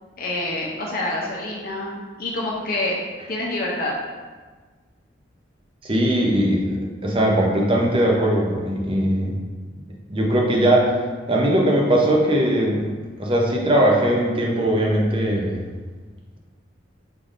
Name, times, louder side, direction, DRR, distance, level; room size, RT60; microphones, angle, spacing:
voice 1, 0.2-3.0 3.3-3.9, left 2 dB, 50° left, -3 dB, 0.6 m, -27 dB
voice 2, 5.8-9.4 10.1-11.0 11.3-12.8 13.2-15.6, right 1 dB, 30° right, -1 dB, 0.6 m, -20 dB
5.2 x 3.4 x 2.5 m, 1.4 s
head